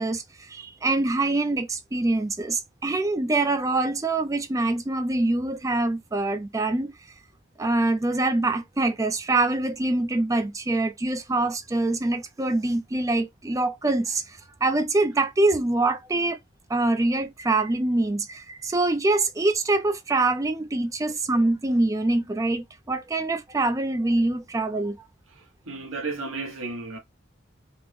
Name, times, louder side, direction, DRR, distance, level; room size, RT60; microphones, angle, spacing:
voice 1, 0.0-6.9 7.6-16.4 16.7-25.0, right 2 dB, 15° right, 0.4 m, -24 dB
voice 2, 25.3-27.0, right 3 dB, 80° right, 1.1 m, -34 dB
3.5 x 2.1 x 3.1 m
head